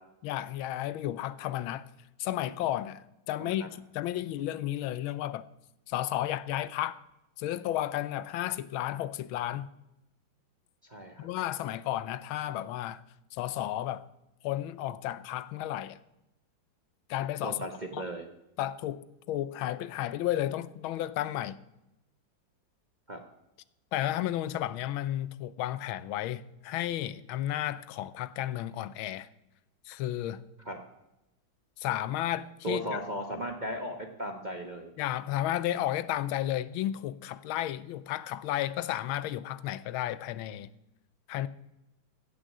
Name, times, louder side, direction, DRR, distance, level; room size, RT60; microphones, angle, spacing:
voice 1, 0.2-1.9 2.2-5.4 5.9-7.0 7.4-9.7 11.2-13.0 13.3-14.1 14.4-16.0 17.1-17.6 17.9-18.0 18.6-21.6 23.9-29.3 29.8-30.4 31.8-33.0 35.0-40.7 41.3-41.5, left 13 dB, 90° left, 1.4 m, -33 dB
voice 2, 10.9-11.3 17.4-18.2 23.1-23.2 30.7-30.8 32.6-34.9, equal, 35° right, 0.7 m, -36 dB
15.0 x 6.4 x 7.4 m
omnidirectional pair, 2.2 m